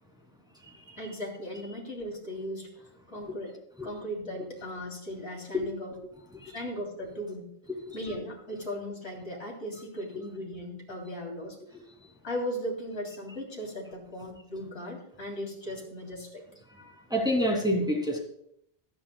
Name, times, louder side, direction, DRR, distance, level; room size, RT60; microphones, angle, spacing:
voice 1, 1.0-2.7 3.1-5.9 6.5-7.5 7.9-11.6 12.2-16.4, equal, 90° left, -1 dB, 3.6 m, -37 dB
voice 2, 16.8-18.2, equal, 5° right, 0 dB, 2.7 m, -27 dB
25.0 x 9.6 x 2.3 m, 0.72 s
omnidirectional pair, 1.1 m